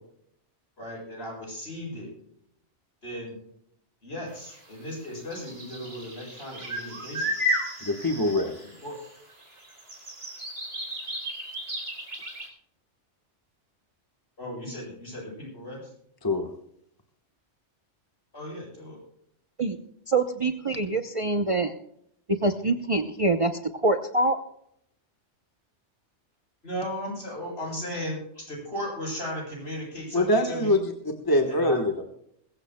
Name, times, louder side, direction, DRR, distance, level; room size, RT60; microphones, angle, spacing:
voice 1, 0.8-2.1 3.0-3.4 4.0-7.3 8.6-9.0 14.4-15.9 18.3-19.0 26.6-30.7 31.5-31.8, equal, 55° left, -2 dB, 7.6 m, -36 dB
sound 1, 4.5-4.6 5.3-9.1 9.4-12.5, equal, 70° right, 4.2 m, -33 dB
voice 2, 7.8-8.5 16.2-16.5 30.1-30.9 31.2-32.0, left 1 dB, 20° left, 4 dB, 1.2 m, -23 dB
voice 3, 20.1-21.7 22.4-24.4, right 2 dB, 30° right, 5 dB, 0.7 m, -25 dB
21.5 x 15.5 x 2.2 m, 0.73 s
omnidirectional pair, 1.2 m